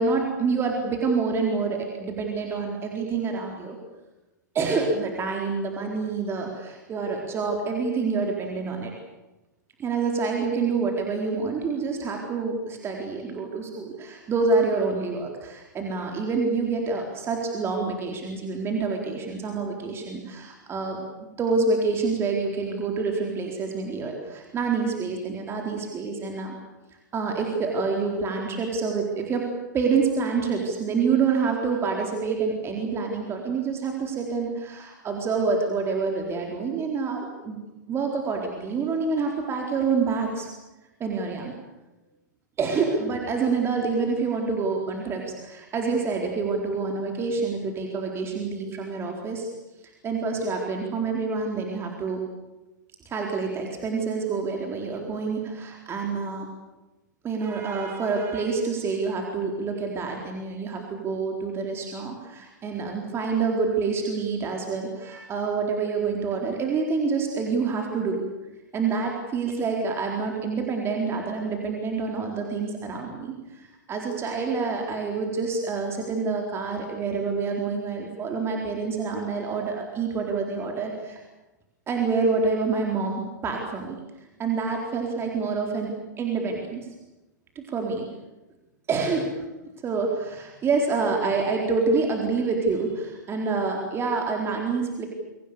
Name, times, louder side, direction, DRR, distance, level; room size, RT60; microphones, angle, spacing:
voice 1, 0.0-3.8 4.5-8.9 9.8-21.0 21.4-26.6 27.1-29.5 29.7-37.6 37.9-40.5 41.0-41.5 42.6-49.5 50.0-52.2 53.0-56.5 57.2-68.2 68.7-81.2 81.9-84.0 84.4-86.9 87.5-88.1 88.9-89.3 89.8-95.1, right 4 dB, 25° right, 1 dB, 4.2 m, -27 dB
28.5 x 24.5 x 6.9 m, 1.0 s
figure-of-eight pair, 100°, 10 cm